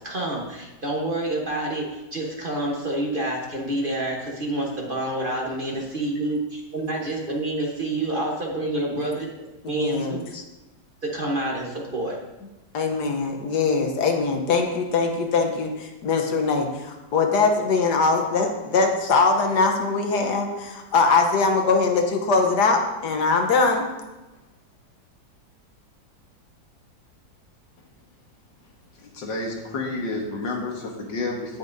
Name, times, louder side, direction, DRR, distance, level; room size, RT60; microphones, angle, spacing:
voice 1, 0.0-9.3 9.7-10.3 11.0-12.2, right 1 dB, 35° right, -2 dB, 1.1 m, -28 dB
voice 2, 9.6-10.4 12.7-23.9, left 4 dB, 70° left, 3 dB, 1.5 m, -22 dB
voice 3, 28.9-31.6, left 2 dB, 90° left, 1 dB, 2.0 m, -30 dB
16.5 x 5.5 x 2.7 m, 1.1 s
omnidirectional pair, 1.9 m